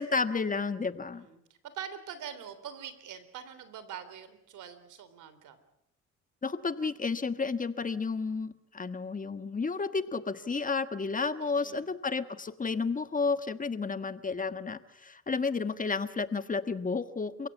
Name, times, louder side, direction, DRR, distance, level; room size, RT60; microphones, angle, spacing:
voice 1, 0.0-1.3 6.4-17.5, left 4 dB, 25° left, 11 dB, 1.4 m, -32 dB
voice 2, 1.1-5.6 11.4-11.9, right 8 dB, 80° right, 12 dB, 3.6 m, -44 dB
29.0 x 16.5 x 8.4 m, 0.78 s
cardioid pair, 90°, 30 cm